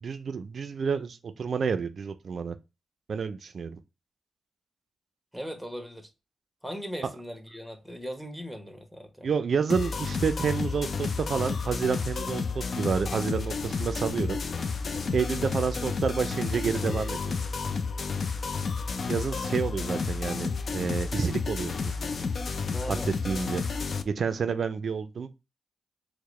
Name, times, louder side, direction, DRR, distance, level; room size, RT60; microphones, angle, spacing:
voice 1, 0.0-2.6 3.1-3.8 9.2-14.4 15.1-17.4 19.1-21.7 22.9-23.0 23.2-23.6 24.0-25.3, right 6 dB, 65° right, 0.3 m, -29 dB
voice 2, 5.3-6.1 6.6-9.3 22.6-23.1, equal, ahead, 1.0 m, -39 dB
sound 1, 9.7-24.0, left 5 dB, 60° left, 0.4 m, -31 dB
4.6 x 2.0 x 3.1 m
cardioid pair, 60°, 0 cm